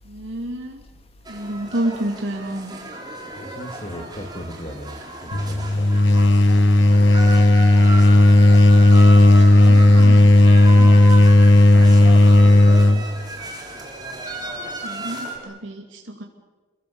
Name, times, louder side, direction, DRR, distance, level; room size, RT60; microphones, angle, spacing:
voice 1, 0.1-0.8 1.3-2.7 9.1-10.2 14.8-16.2, right 1 dB, 80° right, 1 dB, 2.6 m, -29 dB
sound 1, 1.2-15.4, right 2 dB, 20° right, 3.9 m, -34 dB
voice 2, 3.4-5.0 5.3-5.9 12.1-12.8, equal, 30° left, 6 dB, 2.3 m, -37 dB
sound 2, 5.3-13.1, left 1 dB, 65° left, 1.2 m, -12 dB
28.0 x 22.5 x 7.1 m, 1.3 s
head